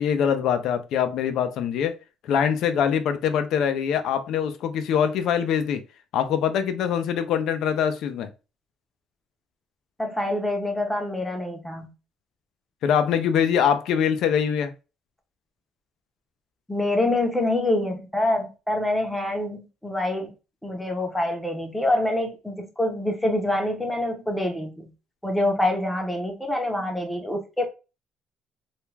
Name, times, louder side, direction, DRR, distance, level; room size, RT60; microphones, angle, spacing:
voice 1, 0.0-1.9 2.2-5.8 6.1-8.3 12.8-14.7, left 8 dB, 65° left, 0.4 m, -23 dB
voice 2, 10.0-11.9 16.7-20.3 20.6-24.9 25.2-27.6, left 1 dB, 5° left, 0.6 m, -26 dB
2.4 x 2.2 x 3.1 m
cardioid pair, 145°, 0 cm